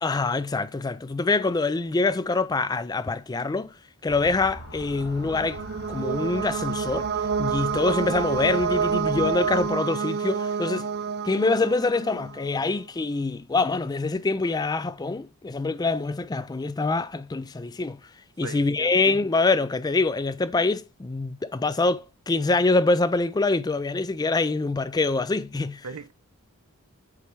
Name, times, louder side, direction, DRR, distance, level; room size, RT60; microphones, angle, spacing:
voice 1, 0.0-3.7 4.0-5.6 5.9-7.1 7.4-10.9 11.2-18.0 18.4-25.8, left 3 dB, 20° left, 0.3 m, -25 dB
Motor vehicle (road) / Siren, 4.1-9.7, left 1 dB, 70° left, 2.8 m, -42 dB
sound 1, 4.8-12.5, right 6 dB, 45° right, 0.5 m, -28 dB
voice 2, 18.4-18.9 25.8-26.1, right 4 dB, 80° right, 0.8 m, -38 dB
8.2 x 3.3 x 4.6 m
head